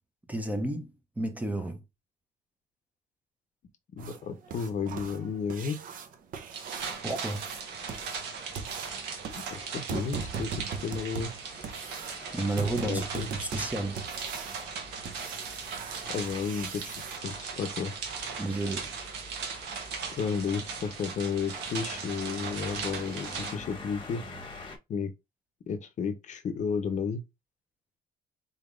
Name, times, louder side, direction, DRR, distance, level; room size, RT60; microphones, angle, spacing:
voice 1, 0.3-1.8 7.0-7.5 12.3-14.0 18.4-18.9, right 2 dB, 10° right, 0.6 m, -32 dB
voice 2, 3.9-5.8 9.5-11.3 12.8-13.3 16.1-17.0 17.2-17.9 20.1-24.2 24.9-25.1 25.7-27.2, left 6 dB, 45° left, 0.6 m, -32 dB
sound 1, 4.0-17.2 19.5-19.6 20.0-20.1 20.6-20.7 21.2-21.3 21.7-21.9 22.3-22.4 22.8-22.9, right 6 dB, 55° right, 0.7 m, -40 dB
sound 2, 6.5-23.6, right 5 dB, 85° right, 1.0 m, -38 dB
sound 3, 6.8-24.8, left 2 dB, 30° left, 1.0 m, -48 dB
4.0 x 3.4 x 2.4 m
cardioid pair, 110°, 17 cm